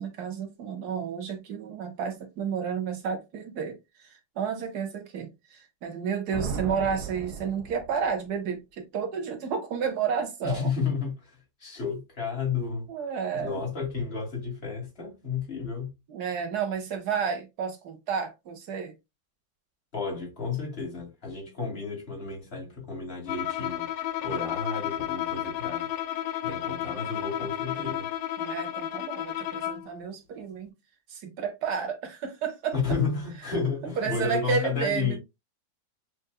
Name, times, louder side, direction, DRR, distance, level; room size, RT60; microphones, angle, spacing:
voice 1, 0.0-10.7 12.9-13.6 16.1-18.9 28.4-30.7 31.1-32.7 33.5-33.6 34.0-35.2, right 6 dB, 60° right, 1.2 m, -31 dB
sound 1, 6.3-8.3, right 5 dB, 85° right, 1.5 m, -36 dB
voice 2, 10.4-11.3 11.6-12.9 13.3-15.9 19.9-23.9 24.2-25.9 26.4-28.1 32.7-35.2, left 5 dB, 30° left, 1.8 m, -32 dB
Bowed string instrument, 23.3-29.9, left 12 dB, 75° left, 1.2 m, -32 dB
6.4 x 2.5 x 2.2 m
omnidirectional pair, 2.1 m